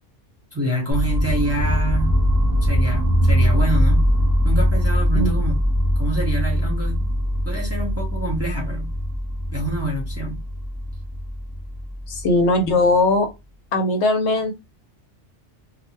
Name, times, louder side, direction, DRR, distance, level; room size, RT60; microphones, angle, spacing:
voice 1, 0.5-2.2 2.6-4.1 4.4-5.6 6.0-7.1 7.4-8.9 9.5-10.4, right 1 dB, 15° right, 0.8 m, -27 dB
sound 1, 0.9-12.8, equal, 30° right, 0.4 m, -21 dB
voice 2, 12.1-13.3 13.7-14.5, left 2 dB, 70° left, 1.0 m, -19 dB
2.6 x 2.1 x 3.1 m
omnidirectional pair, 1.2 m